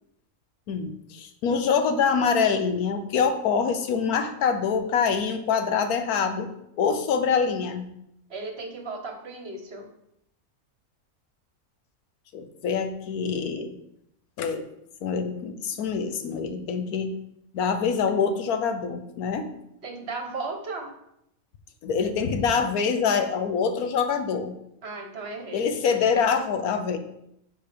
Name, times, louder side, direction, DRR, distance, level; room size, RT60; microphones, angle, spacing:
voice 1, 0.7-7.9 12.3-13.7 14.4-14.6 15.0-17.1 17.5-19.5 21.8-24.5 25.5-27.0, left 6 dB, 80° left, 8 dB, 1.3 m, -25 dB
voice 2, 8.3-9.9 19.8-20.9 24.8-25.6, right 3 dB, 50° right, 3 dB, 1.2 m, -35 dB
10.0 x 4.4 x 3.4 m, 0.78 s
omnidirectional pair, 1.5 m